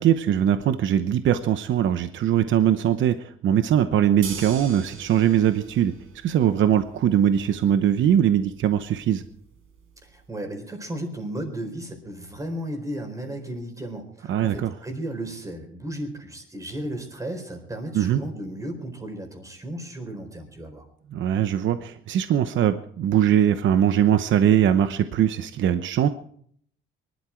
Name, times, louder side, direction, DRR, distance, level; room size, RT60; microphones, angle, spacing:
voice 1, 0.0-5.9 6.2-9.2 14.3-14.8 17.9-18.2 21.1-26.1, right 10 dB, 65° right, 10 dB, 0.9 m, -21 dB
sound 1, 4.2-10.3, right 5 dB, 90° right, 4.6 m, -43 dB
voice 2, 10.0-20.9, right 1 dB, 15° right, 4 dB, 4.2 m, -34 dB
23.5 x 12.5 x 4.5 m, 0.63 s
cardioid pair, 160°, 21 cm